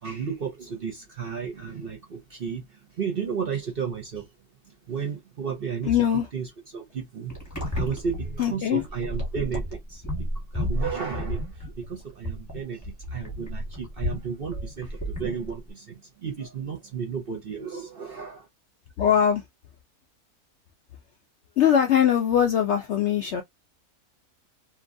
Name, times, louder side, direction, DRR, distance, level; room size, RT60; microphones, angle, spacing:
voice 1, 0.0-4.3 4.7-18.5, right 6 dB, 50° right, 0.7 m, -33 dB
voice 2, 5.8-6.3 8.4-8.8 19.0-19.4 21.6-23.4, left 9 dB, 70° left, 0.6 m, -21 dB
sound 1, 7.3-15.7, equal, 15° left, 1.1 m, -32 dB
2.9 x 2.4 x 2.5 m
omnidirectional pair, 1.6 m